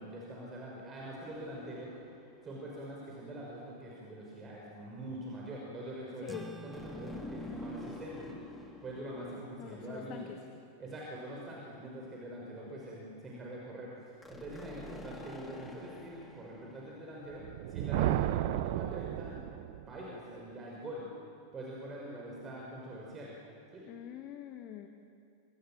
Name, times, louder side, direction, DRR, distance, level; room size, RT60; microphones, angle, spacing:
voice 1, 0.0-1.9 2.4-8.4 8.8-10.3 10.8-17.4 17.7-19.4 19.9-21.0 21.5-23.3 23.7-23.9, right 1 dB, 20° right, -3 dB, 6.1 m, -44 dB
sound 1, 1.2-2.8 6.7-10.5 14.2-17.5, left 2 dB, 10° left, 2.9 m, -48 dB
voice 2, 6.2-6.6 9.6-10.4 17.9-18.2 23.9-24.9, left 11 dB, 40° left, 6 dB, 1.8 m, -44 dB
sound 2, 6.3-11.1, right 1 dB, 5° right, 1.7 m, -53 dB
Thunder, 17.3-20.0, right 14 dB, 50° right, 0.9 m, -33 dB
27.5 x 25.5 x 7.8 m, 2.5 s
figure-of-eight pair, 90°, 0 cm